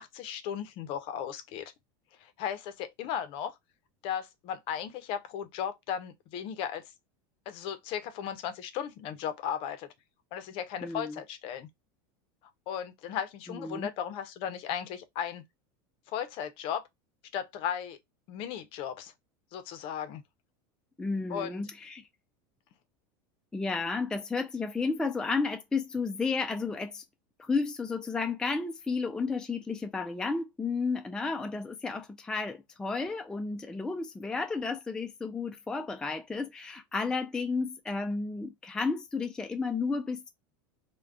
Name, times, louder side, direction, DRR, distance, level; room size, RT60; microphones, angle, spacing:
voice 1, 0.0-1.7 2.2-3.5 4.0-6.8 7.5-9.9 10.3-11.7 12.7-15.4 16.1-16.8 17.3-18.0 18.3-19.1 19.5-20.2 21.3-21.6, left 9 dB, 50° left, 0.6 m, -36 dB
voice 2, 10.8-11.2 13.5-13.9 21.0-22.1 23.5-27.0 27.4-40.3, left 4 dB, 5° left, 0.3 m, -32 dB
2.3 x 2.2 x 3.5 m
supercardioid pair, 130°, 11 cm